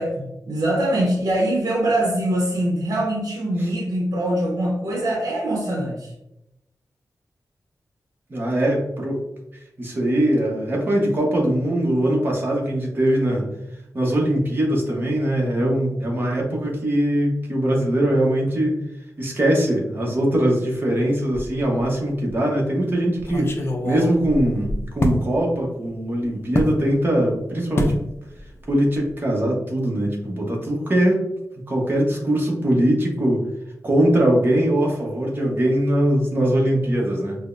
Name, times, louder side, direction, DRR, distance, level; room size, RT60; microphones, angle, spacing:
voice 1, 0.0-6.1, right 1 dB, 85° right, -2 dB, 0.7 m, -23 dB
voice 2, 8.3-9.2 9.8-13.4 13.9-18.8 19.2-23.5 23.8-28.0 28.7-31.3 31.7-33.4 33.8-37.4, right 1 dB, 35° right, -1 dB, 0.9 m, -21 dB
sound 1, 21.3-21.9 22.3-22.4 23.2-25.2 26.5-26.8 27.8-28.0 28.4-28.7 28.9-29.1, left 1 dB, 40° left, 0.5 m, -25 dB
5.0 x 2.1 x 2.5 m, 0.88 s
wide cardioid pair, 155°, 6 cm